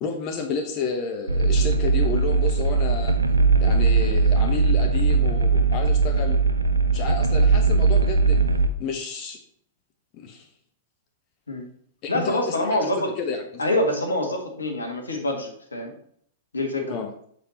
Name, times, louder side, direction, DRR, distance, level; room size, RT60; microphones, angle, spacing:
voice 1, 0.0-3.2 3.6-6.4 6.9-8.4 8.8-9.4 10.1-10.5 12.0-13.6 16.9-17.1, left 5 dB, 40° left, 4 dB, 0.9 m, -31 dB
sound 1, 1.3-8.7, right 4 dB, 85° right, 0.5 m, -20 dB
voice 2, 12.1-13.1 13.6-15.9 16.5-17.0, left 1 dB, 85° left, 3 dB, 1.6 m, -25 dB
7.3 x 4.5 x 4.2 m, 0.63 s
figure-of-eight pair, 105°, 0 cm